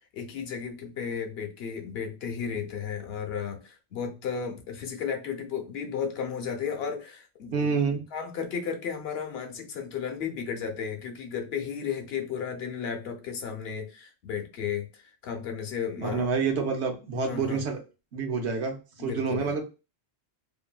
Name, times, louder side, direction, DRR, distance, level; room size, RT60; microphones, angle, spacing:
voice 1, 0.1-7.8 8.1-16.3 17.3-17.6 19.0-19.5, left 7 dB, 70° left, 0.9 m, -34 dB
voice 2, 7.5-8.0 16.0-17.8 18.1-19.6, right 5 dB, 80° right, 1.0 m, -28 dB
2.7 x 2.5 x 2.2 m
omnidirectional pair, 1.1 m